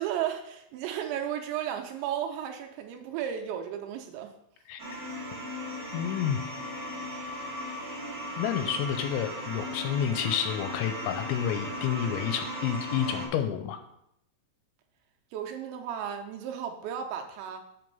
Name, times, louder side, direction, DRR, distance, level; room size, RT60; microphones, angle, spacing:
voice 1, 0.0-4.3 15.3-17.6, right 9 dB, 80° right, 4 dB, 2.8 m, -34 dB
sound 1, 4.8-13.3, equal, 30° right, 2.2 m, -37 dB
voice 2, 5.9-6.4 8.4-13.8, left 9 dB, 85° left, 7 dB, 2.7 m, -29 dB
7.8 x 5.1 x 5.4 m, 0.78 s
omnidirectional pair, 5.5 m